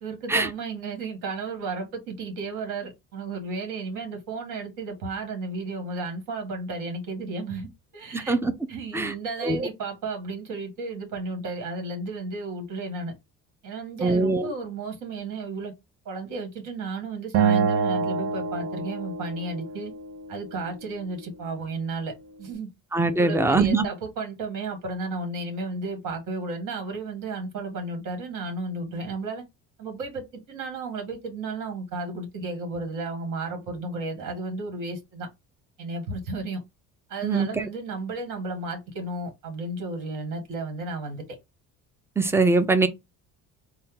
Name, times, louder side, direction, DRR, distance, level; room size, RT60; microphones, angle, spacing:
voice 1, 0.0-7.7 7.9-8.4 8.7-13.1 13.6-15.7 16.1-19.9 20.3-22.1 22.4-22.7 23.2-29.4 29.8-35.3 35.8-36.6 37.1-41.3, right 3 dB, 65° right, 1.9 m, -33 dB
voice 2, 8.1-8.5 8.9-9.1 9.4-9.7 14.0-14.5 22.9-23.9 37.2-37.5 42.2-42.9, right 3 dB, 10° right, 0.5 m, -22 dB
Acoustic guitar, 17.3-20.6, right 6 dB, 45° right, 0.7 m, -26 dB
4.1 x 2.2 x 3.7 m
cardioid pair, 130°, 33 cm